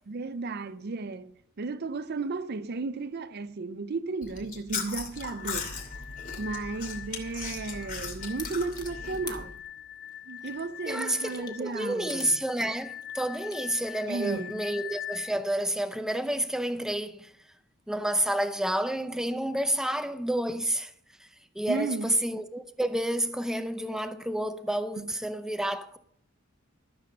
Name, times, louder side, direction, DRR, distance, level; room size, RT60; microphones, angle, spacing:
voice 1, 0.1-5.8 6.4-9.6 10.3-12.4 14.1-14.7 21.7-22.1 25.0-25.1, right 3 dB, 50° right, 0.5 m, -34 dB
Chewing mastication, 4.2-9.5, left 5 dB, 40° left, 2.6 m, -38 dB
sound 1, 5.1-15.3, left 10 dB, 60° left, 0.6 m, -43 dB
sound 2, 5.9-14.6, left 4 dB, 20° left, 1.3 m, -50 dB
voice 2, 10.9-17.3 17.9-20.9 21.2-21.3 21.6-26.0, right 1 dB, 5° right, 0.6 m, -30 dB
14.0 x 7.0 x 6.5 m
head